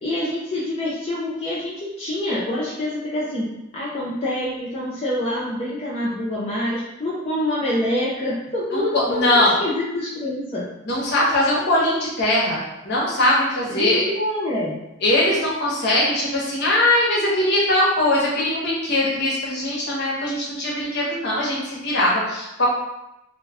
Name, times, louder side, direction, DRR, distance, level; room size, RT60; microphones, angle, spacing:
voice 1, 0.0-10.7 13.7-14.8, left 1 dB, 30° left, -8 dB, 0.4 m, -26 dB
voice 2, 8.7-9.5 10.8-14.0 15.0-22.7, left 1 dB, 55° left, -5 dB, 0.8 m, -21 dB
2.2 x 2.0 x 3.4 m, 0.92 s
head